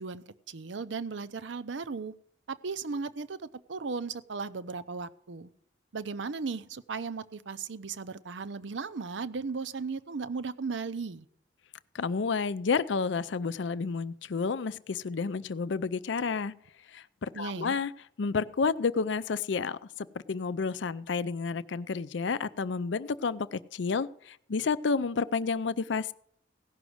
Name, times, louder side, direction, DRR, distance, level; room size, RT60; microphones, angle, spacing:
voice 1, 0.0-2.1 2.5-3.4 3.7-5.5 5.9-11.3 17.3-17.8, right 4 dB, 75° right, 14 dB, 0.6 m, -36 dB
voice 2, 11.9-16.5 16.9-17.9 18.2-26.1, left 5 dB, 70° left, 15 dB, 0.5 m, -30 dB
16.5 x 6.2 x 7.8 m, 0.65 s
head